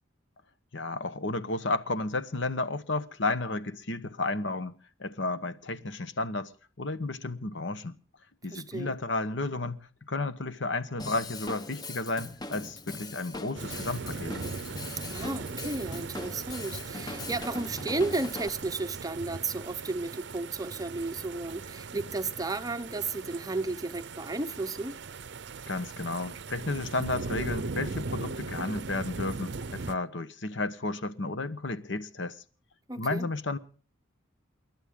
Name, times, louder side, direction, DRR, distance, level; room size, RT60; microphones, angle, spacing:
voice 1, 0.7-6.5 6.8-8.0 8.4-9.8 10.1-14.4 25.7-32.4 33.0-33.6, left 2 dB, 60° left, 1.1 m, -32 dB
voice 2, 8.5-8.9 14.8-25.0 32.9-33.3, right 3 dB, 20° right, 0.7 m, -33 dB
Drum kit / Drum, 11.0-18.5, left 2 dB, 20° left, 0.8 m, -41 dB
sound 1, 13.5-29.9, right 4 dB, 60° right, 0.6 m, -39 dB
29.0 x 11.5 x 3.8 m
head